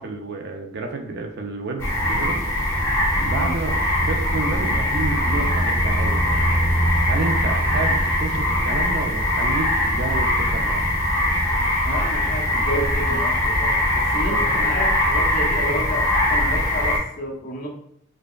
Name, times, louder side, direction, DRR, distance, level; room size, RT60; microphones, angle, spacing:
voice 1, 0.0-2.4 3.2-3.8 4.1-6.3 7.1-11.0, right 3 dB, 50° right, 3 dB, 0.4 m, -30 dB
sound 1, 1.8-17.0, left 1 dB, 10° left, 0.9 m, -21 dB
voice 2, 11.8-17.7, equal, 40° left, -1 dB, 0.8 m, -30 dB
5.0 x 2.3 x 2.2 m, 0.70 s
head